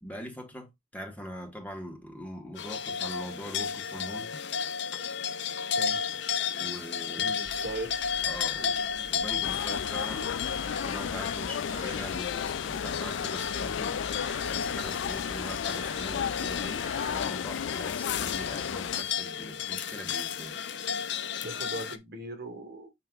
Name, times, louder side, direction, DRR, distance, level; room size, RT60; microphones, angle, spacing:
voice 1, 0.0-4.3 6.6-7.3 8.2-8.8 9.1-10.3 10.8-14.0 14.5-20.6, equal, 10° left, 1.7 m, -42 dB
sound 1, 2.6-22.0, left 7 dB, 65° left, 0.8 m, -33 dB
voice 2, 7.2-7.9 21.4-22.9, right 2 dB, 60° right, 2.0 m, -39 dB
sound 2, 7.4-17.2, left 1 dB, 10° right, 1.8 m, -45 dB
sound 3, 9.4-19.0, left 8 dB, 85° left, 0.4 m, -34 dB
7.4 x 5.8 x 2.4 m
head